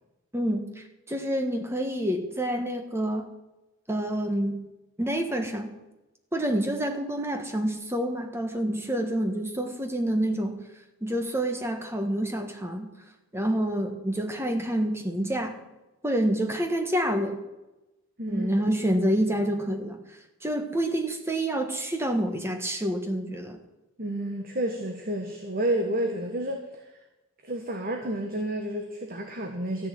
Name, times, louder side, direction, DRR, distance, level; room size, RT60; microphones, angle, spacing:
voice 1, 0.3-3.3 3.9-4.6 5.0-5.7 6.3-10.6 11.0-12.9 13.3-15.6 16.0-17.4 18.3-20.0 20.4-23.6, right 1 dB, 10° right, 5 dB, 1.4 m, -28 dB
voice 2, 24.0-26.6 27.4-29.9, right 1 dB, 45° right, 3 dB, 1.3 m, -30 dB
14.0 x 6.7 x 9.2 m, 1.0 s
head